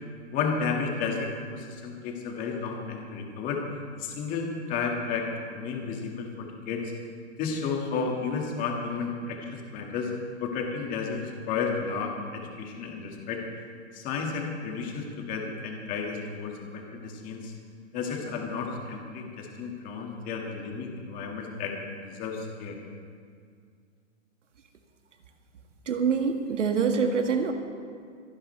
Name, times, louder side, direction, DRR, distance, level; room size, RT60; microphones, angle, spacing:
voice 1, 0.3-3.6 4.0-6.8 7.4-10.1 10.4-13.4 13.9-17.5 17.9-21.7 22.0-22.8, left 5 dB, 25° left, 1 dB, 1.9 m, -32 dB
voice 2, 25.9-27.5, right 5 dB, 85° right, 5 dB, 1.9 m, -25 dB
26.5 x 11.0 x 3.3 m, 2.2 s
hypercardioid pair, 155°, 36 cm